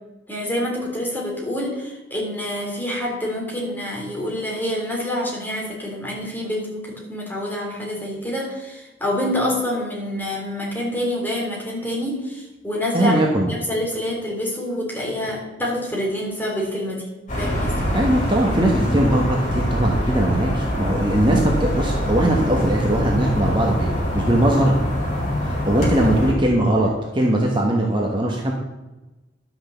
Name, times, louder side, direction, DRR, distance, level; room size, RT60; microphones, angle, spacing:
voice 1, 0.3-13.2 13.5-17.0 17.4-17.9 26.0-26.1, left 1 dB, 10° left, -3 dB, 3.2 m, -27 dB
voice 2, 12.9-13.5 17.9-24.8 25.4-26.9 27.1-28.5, right 1 dB, 25° right, -1 dB, 1.3 m, -20 dB
sound 1, 17.3-26.3, equal, 40° left, 4.7 m, -24 dB
11.0 x 6.2 x 6.9 m, 1.1 s
head